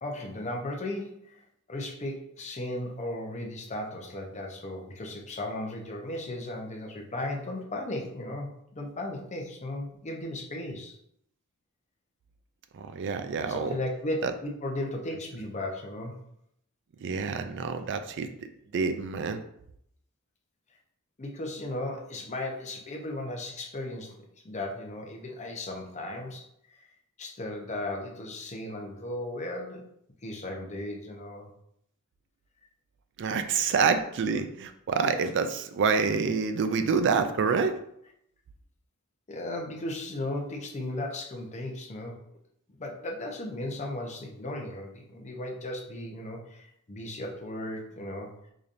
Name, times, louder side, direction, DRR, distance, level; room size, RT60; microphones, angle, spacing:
voice 1, 0.0-11.0 13.5-16.2 21.2-26.9 27.2-29.8 30.2-31.5 39.3-42.2 42.8-48.3, left 1 dB, 30° left, 1 dB, 0.6 m, -36 dB
voice 2, 12.7-13.7 14.2-14.3 17.0-18.3 18.7-19.4 33.2-37.8, right 5 dB, 55° right, 9 dB, 0.4 m, -27 dB
4.9 x 2.7 x 2.5 m, 0.72 s
head